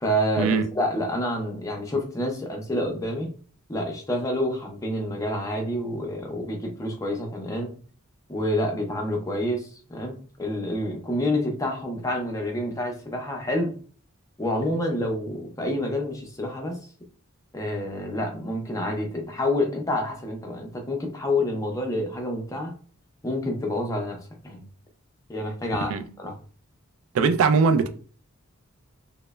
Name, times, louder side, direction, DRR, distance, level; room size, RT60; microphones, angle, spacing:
voice 1, 0.0-3.3 3.7-7.7 8.3-13.7 14.4-16.8 17.5-22.7 23.2-24.7 25.3-25.9 26.2-26.3, left 1 dB, 15° left, 0.5 m, -28 dB
voice 2, 27.1-27.9, right 5 dB, 65° right, 0.3 m, -20 dB
3.0 x 2.0 x 2.2 m
head